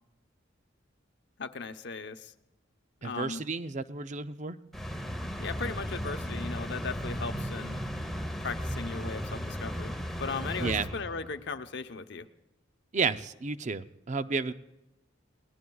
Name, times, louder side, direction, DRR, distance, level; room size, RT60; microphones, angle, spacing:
voice 1, 1.4-2.3 3.0-3.4 5.4-7.8 8.4-9.9 10.2-12.3, left 4 dB, 60° left, 8 dB, 0.8 m, -37 dB
voice 2, 3.0-4.6 10.6-10.9 12.9-14.5, right 4 dB, 40° right, 12 dB, 0.5 m, -32 dB
sound 1, 4.7-11.4, equal, ahead, 0.9 m, -35 dB
30.0 x 19.0 x 2.3 m, 1.0 s
head